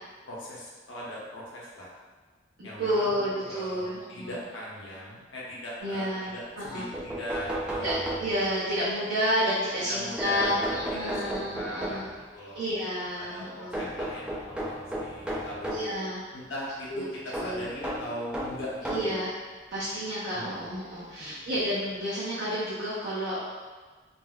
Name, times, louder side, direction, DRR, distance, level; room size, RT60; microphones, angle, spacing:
voice 1, 0.2-1.9 2.6-7.9 9.8-12.0 12.3-12.6 13.2-15.9 16.3-19.1 20.3-20.6 21.2-21.4, equal, 75° left, -6 dB, 0.8 m, -39 dB
voice 2, 2.6-4.3 5.8-6.9 7.8-12.0 12.5-13.9 15.7-16.2 16.9-17.1 17.3-17.6 18.9-19.4 19.7-23.4, equal, 70° right, -10 dB, 0.7 m, -30 dB
sound 1, 6.6-6.7 6.9-8.7 10.2-12.2 13.7-15.9 17.3-19.2 20.1-20.2 21.5-21.6 21.9-22.0, right 1 dB, 5° right, 0.3 m, -34 dB
3.8 x 2.1 x 2.3 m, 1.4 s
head